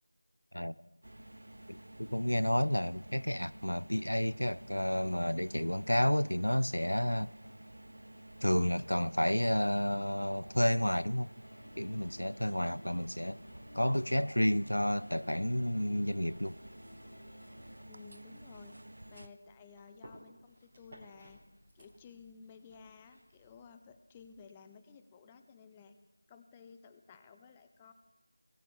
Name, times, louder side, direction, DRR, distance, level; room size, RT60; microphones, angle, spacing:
sound 1, 1.0-19.3, right 1 dB, 60° right, 0.6 m, -52 dB
voice 1, 1.7-7.3 8.4-11.3 11.8-13.4 13.7-16.6, equal, 85° left, 0.4 m, -31 dB
Musical instrument, 11.4-17.8, left 1 dB, 50° left, 1.0 m, -57 dB
voice 2, 17.9-18.7 19.1-21.4 21.7-26.0 26.3-27.9, left 5 dB, 10° left, 0.3 m, -55 dB
sound 2, 18.5-24.4, equal, 25° right, 2.6 m, -60 dB
19.5 x 7.5 x 3.6 m
figure-of-eight pair, 170°, 0 cm